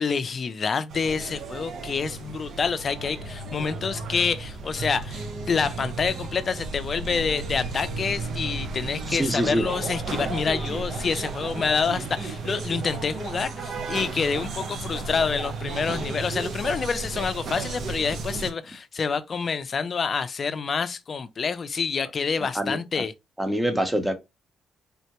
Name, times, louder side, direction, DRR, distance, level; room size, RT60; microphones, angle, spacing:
voice 1, 0.0-23.1, left 5 dB, 45° left, 0.4 m, -27 dB
sound 1, 0.9-18.5, right 3 dB, 60° right, 0.7 m, -33 dB
voice 2, 9.1-9.6 22.5-23.0 23.4-24.1, equal, 10° right, 0.8 m, -25 dB
3.7 x 2.1 x 2.9 m
cardioid pair, 90°, 0 cm